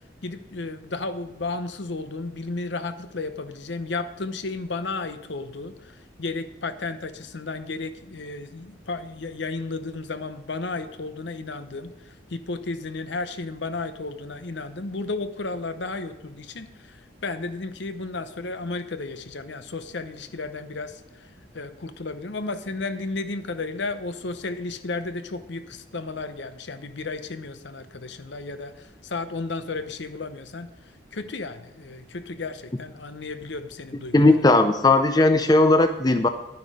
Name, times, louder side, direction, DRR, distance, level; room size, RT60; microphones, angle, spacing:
voice 1, 0.2-21.3 21.5-30.7 31.1-34.5, left 3 dB, 65° left, 11 dB, 0.8 m, -33 dB
voice 2, 34.1-36.3, left 2 dB, 20° left, 8 dB, 0.5 m, -17 dB
11.0 x 9.4 x 4.9 m, 0.99 s
head